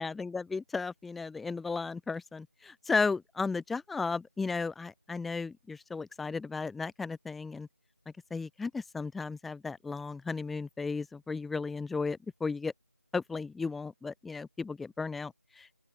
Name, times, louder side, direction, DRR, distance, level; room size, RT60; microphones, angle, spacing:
voice 1, 0.0-7.7 8.3-12.7 13.1-15.8, left 4 dB, ahead, 1.4 m, -34 dB
open air
figure-of-eight pair, 175°, 9 cm